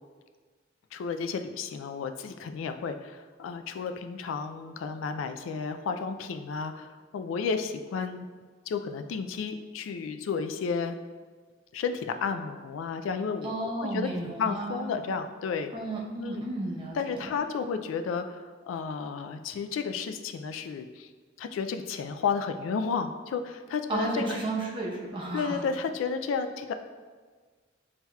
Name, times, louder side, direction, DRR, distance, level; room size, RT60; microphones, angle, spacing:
voice 1, 0.9-8.3 8.7-11.0 11.7-13.5 13.8-15.7 16.2-16.4 16.9-21.1 21.4-24.2 25.3-26.7, left 5 dB, 90° left, 8 dB, 0.3 m, -32 dB
voice 2, 13.4-14.9 15.7-17.3 23.9-25.6, right 2 dB, 25° right, -3 dB, 0.7 m, -33 dB
7.3 x 2.8 x 2.3 m, 1.5 s
head